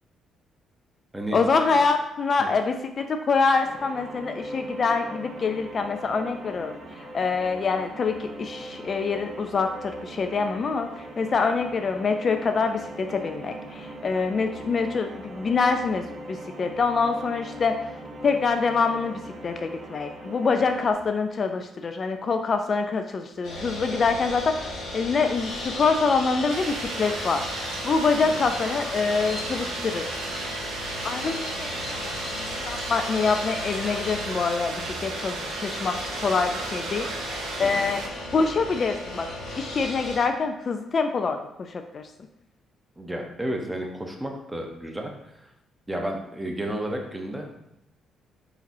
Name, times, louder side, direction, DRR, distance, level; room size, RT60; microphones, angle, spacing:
voice 1, 1.3-17.8 18.2-27.4 27.8-30.1 31.0-35.4 35.6-36.0 36.2-37.1 37.6-38.0 38.3-39.3 39.5-42.1, left 4 dB, 45° left, 6 dB, 0.3 m, -25 dB
sound 1, 3.6-20.9, right 1 dB, 50° right, 1.1 m, -40 dB
sound 2, 23.4-40.2, left 1 dB, 85° left, 1.3 m, -34 dB
sound 3, 26.5-38.1, right 5 dB, 80° right, 0.5 m, -36 dB
voice 2, 37.6-37.9 43.0-45.1 45.9-47.5, right 1 dB, 10° right, 2 dB, 0.8 m, -32 dB
4.2 x 3.8 x 2.7 m, 0.83 s
cardioid pair, 90°, 0 cm